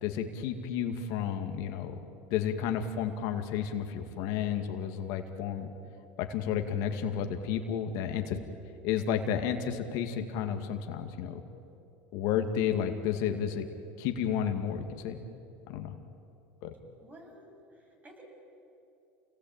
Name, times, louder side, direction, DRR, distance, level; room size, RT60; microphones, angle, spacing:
voice 1, 0.0-2.0 2.3-5.7 6.2-8.4 8.8-11.4 12.1-13.7 14.0-15.2 15.7-15.9 16.6-16.7, left 8 dB, 65° left, 5 dB, 2.2 m, -32 dB
voice 2, 17.0-18.2, right 1 dB, 25° right, 1 dB, 7.9 m, -53 dB
28.5 x 19.0 x 9.0 m, 2.7 s
supercardioid pair, 100°, 6 cm